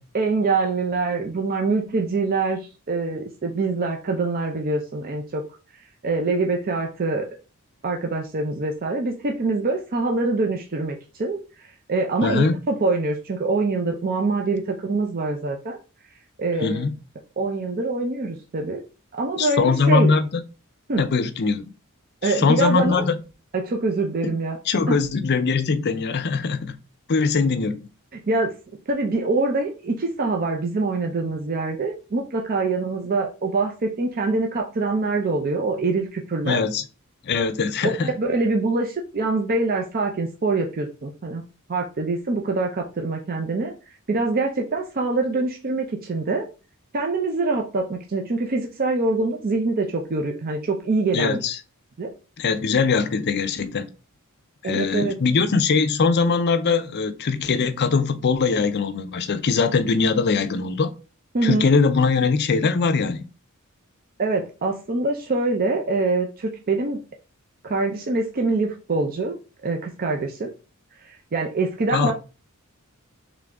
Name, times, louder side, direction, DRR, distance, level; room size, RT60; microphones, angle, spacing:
voice 1, 0.1-5.4 6.0-7.3 7.8-15.8 16.4-16.8 17.4-18.8 19.1-20.1 20.9-21.0 22.2-23.1 23.5-24.6 24.9-25.0 28.1-28.5 28.9-36.6 38.0-41.4 41.7-43.7 44.1-46.5 46.9-51.4 52.0-52.1 54.6-55.1 61.3-61.7 64.2-67.0 67.6-69.4 69.6-70.5 71.0-72.1, right 3 dB, 40° right, 0.5 m, -24 dB
voice 2, 12.2-12.6 16.6-16.9 19.4-20.4 21.0-21.7 22.2-23.2 24.2-24.3 24.7-26.7 27.1-27.9 36.4-36.8 37.2-38.1 51.1-51.6 52.4-53.9 54.6-60.9 61.4-63.3 71.9-72.1, left 4 dB, 50° left, 0.5 m, -21 dB
3.7 x 3.3 x 3.6 m
head